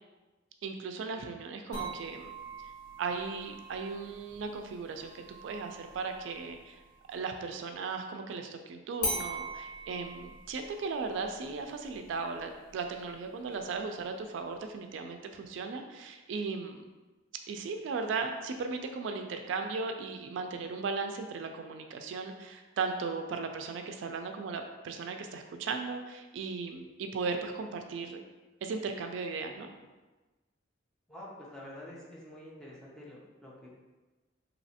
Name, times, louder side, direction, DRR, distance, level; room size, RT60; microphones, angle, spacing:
voice 1, 0.6-2.3 3.0-6.8 7.1-16.8 17.5-28.2 28.6-29.7, right 4 dB, 75° right, 6 dB, 0.3 m, -37 dB
sound 1, 1.7-7.3 9.0-14.0, right 1 dB, 90° left, 1.1 m, -42 dB
voice 2, 31.1-33.8, left 1 dB, 5° left, -6 dB, 0.6 m, -48 dB
3.1 x 2.8 x 2.7 m, 1.2 s
head